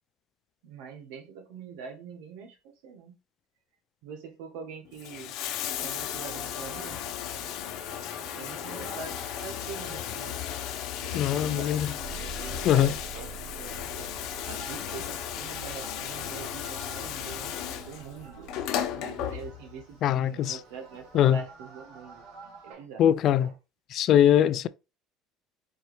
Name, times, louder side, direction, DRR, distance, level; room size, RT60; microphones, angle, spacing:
voice 1, 0.6-3.2 4.0-5.3 5.8-7.0 8.3-10.3 11.0-11.8 12.1-13.3 13.6-14.1 14.4-18.5 18.9-23.0 23.4-23.5, right 6 dB, 85° right, 1.2 m, -44 dB
Bathtub (filling or washing), 4.9-19.8 20.9-21.0, left 10 dB, 65° left, 0.7 m, -35 dB
sound 1, 6.3-22.7, right 4 dB, 65° right, 2.0 m, -47 dB
voice 2, 11.1-11.9 12.6-12.9 20.0-20.6 21.1-21.4 23.0-23.5 23.9-24.7, left 10 dB, 50° left, 0.3 m, -22 dB
4.6 x 3.0 x 3.1 m
cardioid pair, 130°, 0 cm